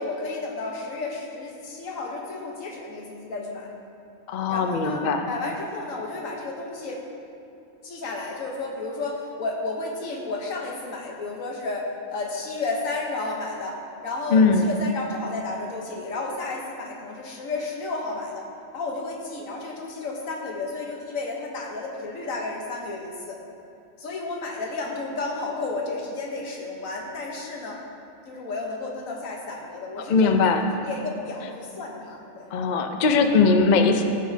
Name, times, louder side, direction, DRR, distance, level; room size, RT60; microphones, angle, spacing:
voice 1, 0.0-3.7 4.5-7.0 7.8-18.4 18.7-23.4 24.0-27.8 28.3-32.6, left 3 dB, 85° left, -1 dB, 1.4 m, -32 dB
voice 2, 4.3-5.3 14.3-14.7 30.1-30.7 32.5-34.0, left 4 dB, 60° left, 6 dB, 0.4 m, -20 dB
14.0 x 5.0 x 2.7 m, 2.7 s
omnidirectional pair, 1.4 m